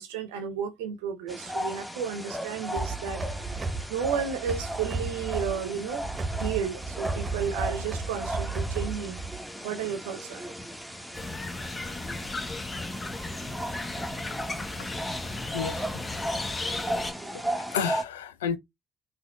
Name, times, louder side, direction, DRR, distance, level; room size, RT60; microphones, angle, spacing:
voice 1, 0.0-3.2 3.9-6.1 6.4-9.2 9.6-10.5, right 7 dB, 75° right, 0.6 m, -32 dB
sound 1, 1.3-18.0, right 1 dB, ahead, 0.8 m, -36 dB
sound 2, 2.7-9.5, right 3 dB, 35° right, 0.8 m, -34 dB
sound 3, 11.1-17.1, left 2 dB, 30° left, 0.8 m, -35 dB
voice 2, 15.5-15.9 16.6-16.9 17.7-18.6, left 8 dB, 80° left, 0.3 m, -31 dB
5.3 x 2.3 x 2.2 m
figure-of-eight pair, 45°, 0 cm